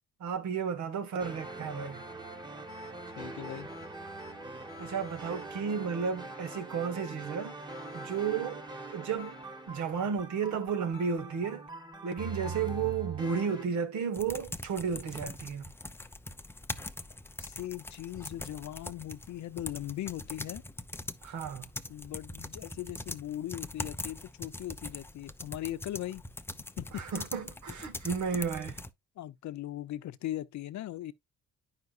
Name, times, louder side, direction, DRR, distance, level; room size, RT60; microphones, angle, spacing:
voice 1, 0.2-2.0 4.8-7.7 7.9-8.7 8.9-11.7 12.0-15.7 21.2-21.7 26.9-28.8, right 6 dB, 70° right, 1.6 m, -33 dB
sound 1, 1.2-13.7, right 3 dB, 15° right, 1.4 m, -42 dB
voice 2, 3.2-3.7 17.4-20.6 21.9-26.2 26.8-27.0 29.2-31.1, left 13 dB, 70° left, 0.7 m, -39 dB
sound 2, 14.1-28.9, left 2 dB, 10° left, 0.6 m, -42 dB
9.3 x 5.7 x 2.5 m
cardioid pair, 90°, 30 cm